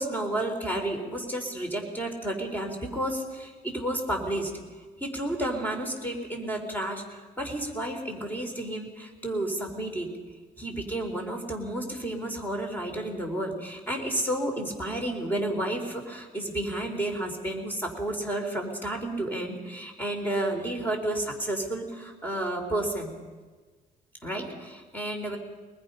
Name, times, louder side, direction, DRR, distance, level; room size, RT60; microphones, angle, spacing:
voice 1, 0.0-4.5 5.0-10.1 10.6-23.2 24.2-25.4, right 1 dB, 10° left, 3 dB, 4.1 m, -31 dB
23.0 x 21.0 x 5.7 m, 1.4 s
cardioid pair, 110°, 17 cm